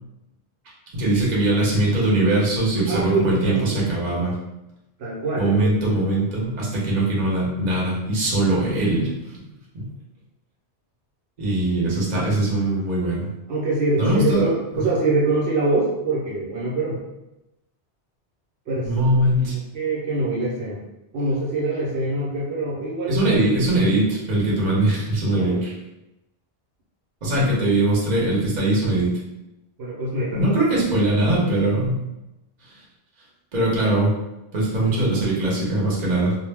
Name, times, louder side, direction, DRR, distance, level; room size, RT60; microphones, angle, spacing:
voice 1, 0.9-4.3 5.4-9.4 9.7-9.9 11.4-13.3 14.0-14.4 18.8-19.6 23.1-25.7 27.2-29.1 30.3-32.0 33.5-34.1 34.5-36.4, right 1 dB, 45° right, -5 dB, 0.8 m, -21 dB
voice 2, 2.9-3.9 5.0-5.9 13.5-17.0 18.7-18.9 19.5-20.8 21.1-23.3 25.3-25.6 29.8-30.5, right 2 dB, 70° right, -5 dB, 0.9 m, -24 dB
2.2 x 2.0 x 3.3 m, 0.95 s
omnidirectional pair, 1.2 m